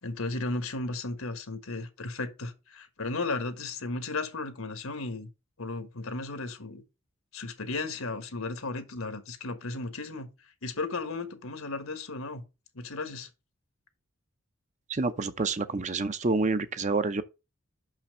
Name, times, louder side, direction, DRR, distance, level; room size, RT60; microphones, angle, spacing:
voice 1, 0.0-5.3 5.6-6.8 7.3-10.3 10.6-12.4 12.7-13.3, left 3 dB, 80° left, 1.5 m, -35 dB
voice 2, 14.9-17.2, right 3 dB, 35° right, 0.6 m, -28 dB
6.0 x 5.7 x 5.5 m
head